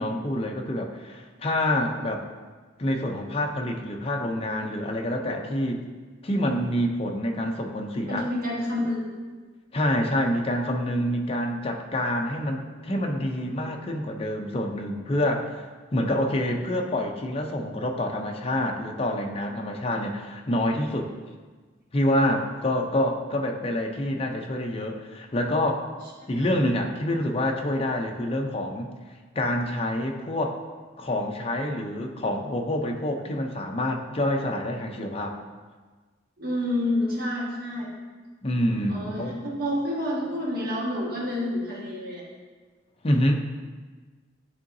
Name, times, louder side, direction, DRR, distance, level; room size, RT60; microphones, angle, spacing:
voice 1, 0.0-2.3 2.8-5.8 6.2-8.3 9.7-15.6 15.9-21.1 21.9-25.9 26.3-28.9 29.3-30.6 31.0-35.4 38.4-39.3 43.0-43.3, left 1 dB, 30° left, 2 dB, 0.5 m, -27 dB
voice 2, 8.1-9.2 26.4-26.5 36.4-37.9 38.9-42.2, left 1 dB, 50° right, -4 dB, 1.5 m, -28 dB
10.0 x 3.9 x 2.6 m, 1.4 s
head